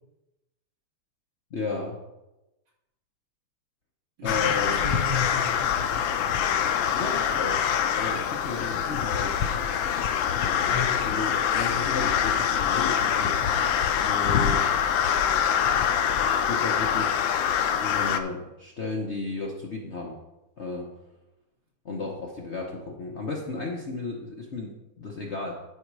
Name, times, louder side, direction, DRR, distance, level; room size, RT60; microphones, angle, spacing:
voice 1, 1.5-2.0 4.2-4.8 6.9-7.7 7.9-9.4 11.0-13.4 14.0-14.8 16.2-17.2 17.8-20.2 20.6-20.9 21.8-25.5, left 3 dB, 45° left, -1 dB, 0.9 m, -34 dB
voice 2, 4.2-6.0 10.7-11.1, left 4 dB, 75° right, -4 dB, 3.4 m, -34 dB
sound 1, 4.3-18.2, left 8 dB, 75° left, 1.3 m, -25 dB
11.5 x 5.0 x 4.7 m, 1.0 s
omnidirectional pair, 2.2 m